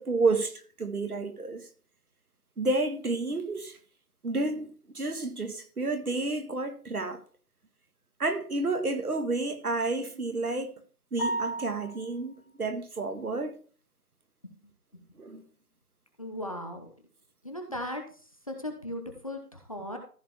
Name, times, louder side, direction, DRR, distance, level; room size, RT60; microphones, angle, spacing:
voice 1, 0.0-1.7 2.6-3.8 4.2-7.2 8.2-10.8 11.1-13.6 15.2-15.4, right 3 dB, 65° right, 1.9 m, -30 dB
sound 1, 11.2-12.2, right 2 dB, 5° left, 1.5 m, -33 dB
voice 2, 16.2-16.9 17.4-18.0 18.5-20.0, left 1 dB, 20° left, 1.0 m, -37 dB
14.5 x 5.0 x 4.4 m
figure-of-eight pair, 165°, 47 cm